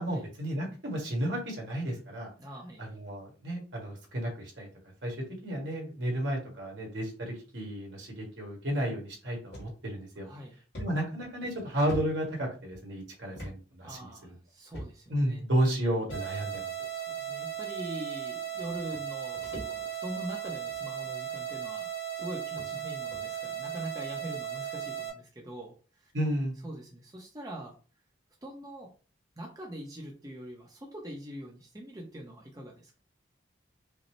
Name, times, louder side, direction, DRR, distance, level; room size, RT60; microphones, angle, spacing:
voice 1, 0.0-2.3 2.8-4.7 5.0-10.3 10.8-14.0 15.1-16.7 26.1-26.6, right 1 dB, 70° right, 0 dB, 1.5 m, -32 dB
voice 2, 2.4-2.9 10.2-10.6 13.8-15.4 16.9-26.1 26.6-27.8 28.4-28.9 29.4-33.0, right 1 dB, 20° right, -1 dB, 0.6 m, -43 dB
sound 1, 9.5-9.7 10.2-10.3 10.7-12.8 13.3-13.6 13.8-14.0 14.7-15.2 16.1-16.6 17.5-17.6 18.6-18.7 18.9-20.1 20.5-20.8 21.6-21.7 22.2-22.3 22.6-22.7 23.1-23.3, equal, 60° left, 1.7 m, -43 dB
sound 2, 16.1-25.1, right 9 dB, 85° left, 1.0 m, -36 dB
5.1 x 2.0 x 3.1 m, 0.36 s
head